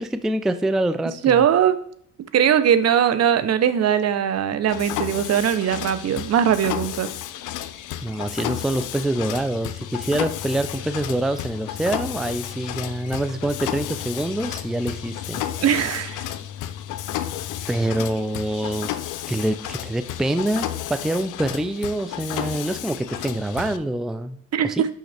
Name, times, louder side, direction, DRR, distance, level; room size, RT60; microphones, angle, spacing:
voice 1, 0.0-1.4 8.0-15.4 17.7-19.0 19.3-24.8, right 1 dB, ahead, 11 dB, 0.3 m, -25 dB
voice 2, 1.2-1.8 2.3-7.1 15.6-16.2 24.5-24.9, right 9 dB, 55° right, 13 dB, 0.7 m, -20 dB
Mechanisms, 4.7-23.8, left 12 dB, 85° left, 0.6 m, -32 dB
6.4 x 5.7 x 3.4 m, 0.63 s
cardioid pair, 90°, 30 cm